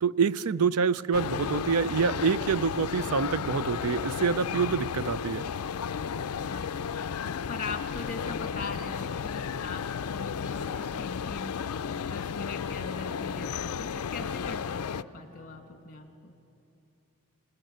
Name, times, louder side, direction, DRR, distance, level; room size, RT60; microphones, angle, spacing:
voice 1, 0.0-5.5, right 5 dB, 75° right, 17 dB, 0.5 m, -26 dB
sound 1, 1.1-15.0, left 7 dB, 75° left, 0.4 m, -33 dB
sound 2, 2.1-15.6, right 1 dB, 35° right, 6.9 m, -55 dB
voice 2, 6.5-7.0 7.5-11.6 12.0-16.3, left 4 dB, 40° left, 5 dB, 2.0 m, -41 dB
27.0 x 19.0 x 7.9 m, 2.7 s
head